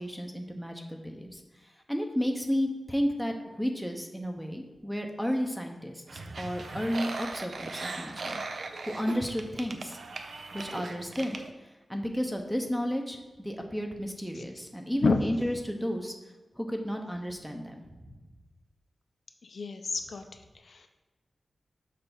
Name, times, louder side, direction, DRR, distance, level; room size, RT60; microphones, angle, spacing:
voice 1, 0.0-1.4 1.9-8.4 8.9-10.0 10.5-11.4 11.9-16.1 16.6-17.8, equal, ahead, 3 dB, 0.8 m, -32 dB
sound 1, 6.1-11.5, right 3 dB, 65° right, 0.5 m, -39 dB
voice 2, 19.4-20.2 20.6-20.9, left 4 dB, 65° left, 6 dB, 0.5 m, -29 dB
6.6 x 3.3 x 5.7 m, 1.2 s
wide cardioid pair, 105°, 0 cm